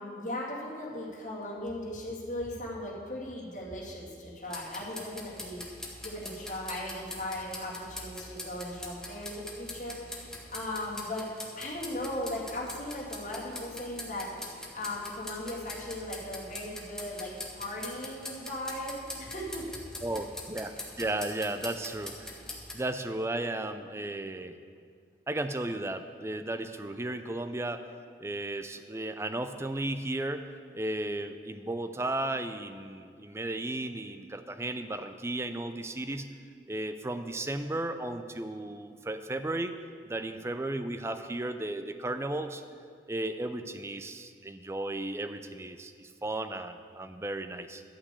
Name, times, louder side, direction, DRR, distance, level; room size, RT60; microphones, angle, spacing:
voice 1, 0.0-11.3 11.5-19.7, left 1 dB, 45° left, -5 dB, 2.3 m, -38 dB
sound 1, 4.4-22.7, left 1 dB, 5° left, 1.0 m, -43 dB
voice 2, 20.0-22.3 22.7-24.6 25.3-27.8 28.2-30.5 30.7-36.3 36.7-39.7 40.0-42.6 43.1-47.8, right 1 dB, 15° right, 9 dB, 0.4 m, -34 dB
11.5 x 5.9 x 8.2 m, 2.2 s
head